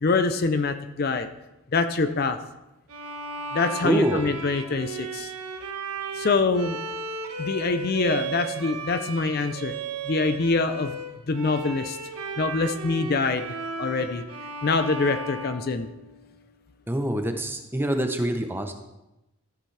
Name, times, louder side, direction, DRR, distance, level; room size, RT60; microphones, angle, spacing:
voice 1, 0.0-1.3 1.7-2.4 3.5-5.3 6.1-6.8 7.4-9.7 10.0-10.9 11.3-12.0 12.4-13.4 13.8-14.2 14.6-15.9, left 3 dB, 45° left, 9 dB, 0.5 m, -25 dB
Bowed string instrument, 2.9-16.4, right 3 dB, 90° right, 1.2 m, -35 dB
voice 2, 3.8-4.3 16.9-18.7, right 1 dB, 10° right, 6 dB, 0.7 m, -25 dB
13.5 x 8.1 x 3.3 m, 0.96 s
head